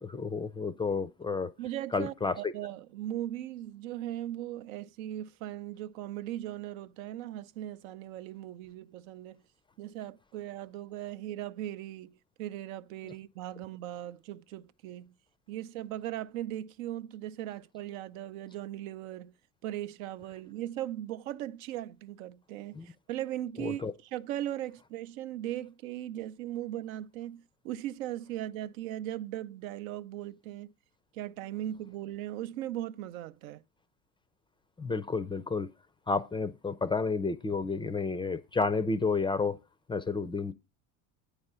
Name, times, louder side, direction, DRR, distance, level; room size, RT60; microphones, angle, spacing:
voice 1, 0.0-1.5 1.9-2.5 22.7-22.9 23.6-23.9 34.8-35.7 36.1-39.6 39.9-40.5, left 4 dB, 15° left, 0.3 m, -31 dB
voice 2, 1.6-9.4 9.8-15.1 15.5-19.3 19.6-30.7 31.1-33.6, right 13 dB, 90° right, 0.6 m, -38 dB
8.8 x 4.9 x 5.4 m
supercardioid pair, 105°, 40 cm